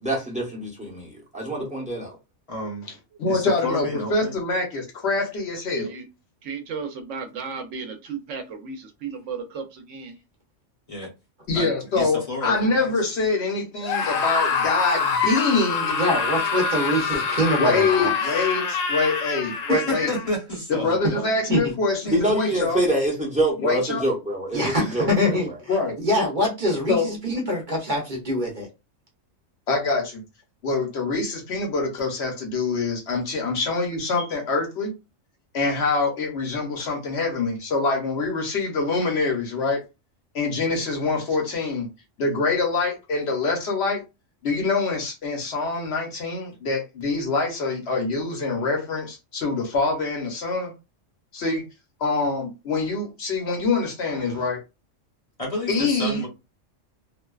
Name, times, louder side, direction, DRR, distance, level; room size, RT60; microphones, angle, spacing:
voice 1, 0.0-2.1 22.1-25.4, right 1 dB, 10° right, 0.6 m, -25 dB
voice 2, 2.5-2.9 3.3-4.3 10.9-11.1 11.5-13.0 19.7-21.0 22.0-22.5 55.4-56.3, left 2 dB, 35° left, 0.8 m, -30 dB
voice 3, 3.2-5.9 11.5-16.0 17.6-19.6 19.9-20.1 20.7-22.8 23.6-24.0 25.7-26.0 26.9-27.1 29.7-30.2 30.6-34.9 35.5-39.8 40.3-41.9 42.2-44.0 44.4-50.7 51.3-51.7 52.0-54.6 55.7-56.2, left 3 dB, 60° left, 1.0 m, -25 dB
voice 4, 5.7-6.1 6.4-10.2 54.0-54.5, right 5 dB, 75° right, 0.9 m, -35 dB
Screaming, 13.8-20.3, left 5 dB, 85° left, 0.9 m, -25 dB
voice 5, 16.0-18.5 19.7-19.8 21.1-21.7 24.5-25.5 26.0-28.7 36.8-36.9, equal, 45° right, 0.7 m, -24 dB
2.5 x 2.2 x 2.2 m
omnidirectional pair, 1.3 m